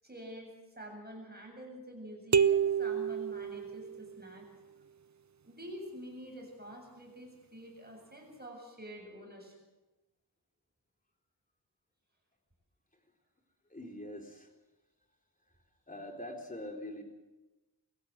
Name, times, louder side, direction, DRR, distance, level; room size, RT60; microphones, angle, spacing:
voice 1, 0.0-4.5 5.4-9.5, equal, 25° right, 1 dB, 7.8 m, -47 dB
sound 1, 2.3-4.2, right 7 dB, 45° right, 0.7 m, -29 dB
voice 2, 13.7-14.5 15.9-17.0, left 1 dB, 20° left, 2 dB, 3.9 m, -43 dB
22.5 x 16.5 x 7.7 m, 1.1 s
wide cardioid pair, 80°, 41 cm